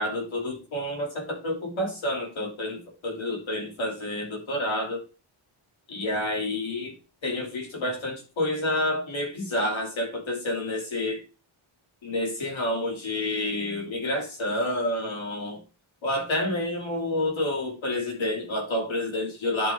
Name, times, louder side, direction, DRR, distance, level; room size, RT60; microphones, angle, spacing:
voice 1, 0.0-5.0 5.9-6.9 7.2-11.2 12.0-15.6 16.0-19.7, left 1 dB, 70° left, 0 dB, 3.2 m, -29 dB
10.5 x 4.8 x 3.4 m, 0.30 s
cardioid pair, 95°, 49 cm